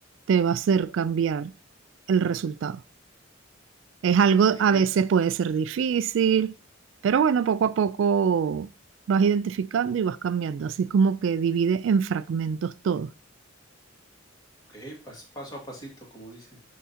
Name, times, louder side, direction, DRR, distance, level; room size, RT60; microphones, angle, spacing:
voice 1, 0.3-1.5 2.1-2.8 4.0-6.5 7.0-8.7 9.1-13.1, right 6 dB, 70° right, 0.3 m, -23 dB
voice 2, 4.5-4.9 14.7-16.6, right 1 dB, 20° left, 2.1 m, -42 dB
11.0 x 3.7 x 2.8 m
head